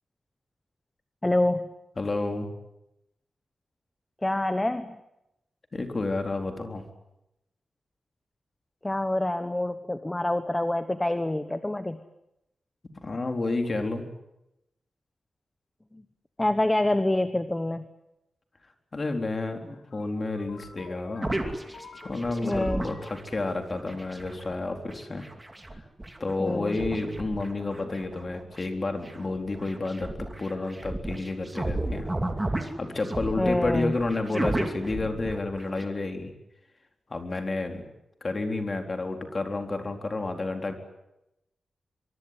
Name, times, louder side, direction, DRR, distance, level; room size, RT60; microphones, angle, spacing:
voice 1, 1.2-1.7 4.2-5.0 8.8-12.0 15.9-16.0 16.4-17.9 22.4-22.9 26.4-26.8 33.4-33.9, left 1 dB, 10° left, 10 dB, 1.1 m, -26 dB
voice 2, 2.0-2.5 5.7-6.8 13.0-14.1 18.9-21.3 22.0-25.2 26.2-32.1 32.8-36.3 37.1-37.9 38.2-40.7, left 2 dB, 30° left, 5 dB, 3.8 m, -30 dB
sound 1, 19.6-23.8, left 4 dB, 75° left, 6.0 m, -48 dB
sound 2, 21.2-23.3 23.7-28.6 29.1-35.8, right 1 dB, 15° right, 2.8 m, -34 dB
24.5 x 23.5 x 9.7 m, 0.88 s
wide cardioid pair, 155°, 0 cm